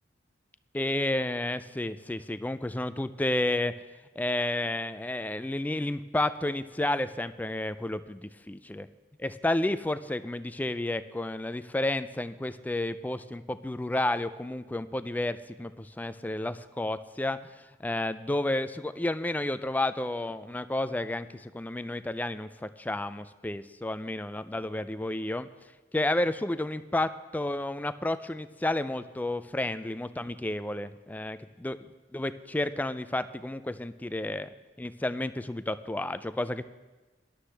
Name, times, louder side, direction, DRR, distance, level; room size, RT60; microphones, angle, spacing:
voice 1, 0.7-3.7 4.2-8.9 9.2-31.8 32.1-34.5 34.8-36.6, left 1 dB, 10° left, 12 dB, 0.3 m, -31 dB
17.5 x 11.5 x 3.3 m, 1.2 s
head